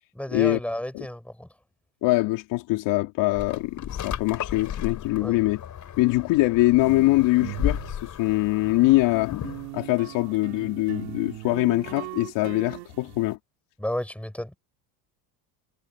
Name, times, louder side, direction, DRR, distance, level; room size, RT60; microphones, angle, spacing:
voice 1, 0.2-1.5 5.2-5.4 13.8-14.6, left 1 dB, 5° left, 7.0 m, -31 dB
voice 2, 2.0-5.6 6.0-13.4, left 20 dB, 65° left, 3.3 m, -23 dB
sound 1, 3.3-9.7, left 9 dB, 40° left, 4.3 m, -34 dB
sound 2, 6.8-9.1 9.4-13.3, right 22 dB, 80° right, 3.4 m, -39 dB
supercardioid pair, 110°, 46 cm